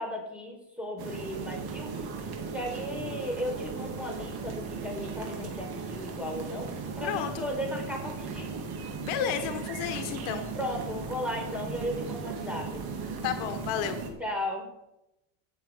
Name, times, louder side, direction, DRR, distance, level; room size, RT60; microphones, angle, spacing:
voice 1, 0.0-8.5 10.5-12.8 14.2-14.7, left 1 dB, ahead, 0 dB, 4.4 m, -36 dB
sound 1, 1.0-14.1, right 4 dB, 50° right, 2.6 m, -37 dB
voice 2, 7.0-7.5 9.0-10.4 13.2-14.0, left 9 dB, 70° left, 7 dB, 1.3 m, -32 dB
17.0 x 7.2 x 5.1 m, 0.90 s
supercardioid pair, 115°, 49 cm